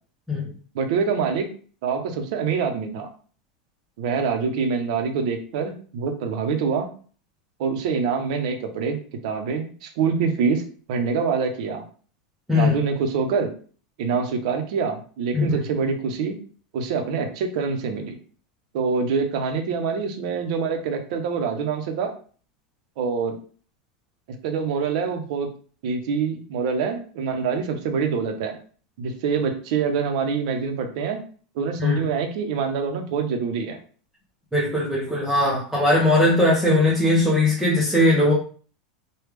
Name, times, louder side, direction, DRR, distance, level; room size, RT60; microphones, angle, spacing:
voice 1, 0.7-1.5 1.8-3.1 4.0-6.9 7.6-11.8 12.5-13.5 14.0-16.4 16.7-18.2 18.7-22.1 23.0-23.4 24.4-25.5 25.8-28.6 29.0-31.2 31.6-33.8, right 5 dB, 65° right, 5 dB, 0.7 m, -25 dB
voice 2, 34.5-38.3, left 1 dB, 5° right, -6 dB, 0.8 m, -19 dB
3.2 x 2.3 x 3.3 m, 0.42 s
supercardioid pair, 150°, 4 cm